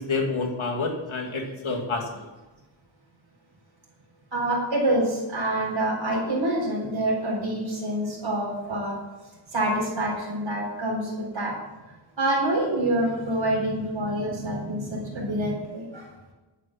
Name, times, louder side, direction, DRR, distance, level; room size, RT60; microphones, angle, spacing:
voice 1, 0.0-2.2, left 3 dB, 90° left, 1 dB, 2.4 m, -28 dB
voice 2, 4.3-9.0 9.5-11.5 12.2-16.1, right 1 dB, 75° right, -4 dB, 4.1 m, -26 dB
11.0 x 8.5 x 6.0 m, 1.1 s
wide cardioid pair, 85°, 46 cm